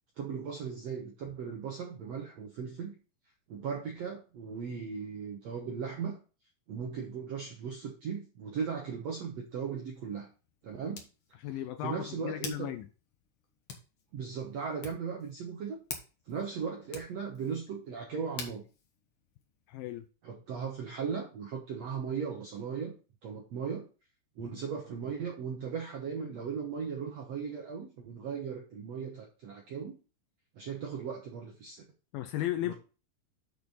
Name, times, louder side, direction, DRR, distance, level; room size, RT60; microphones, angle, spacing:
voice 1, 0.2-3.0 3.5-6.2 6.7-10.3 10.6-11.0 11.8-12.7 14.1-15.8 16.3-18.6 20.2-22.9 23.2-23.9 24.4-29.9 30.6-31.8 32.6-32.7, right 6 dB, 75° right, 1.5 m, -37 dB
Hands, 9.3-20.1, left 5 dB, 65° left, 1.3 m, -49 dB
voice 2, 11.4-12.9 19.7-20.1 32.1-32.7, left 13 dB, 80° left, 2.2 m, -35 dB
7.0 x 6.7 x 4.0 m
omnidirectional pair, 4.6 m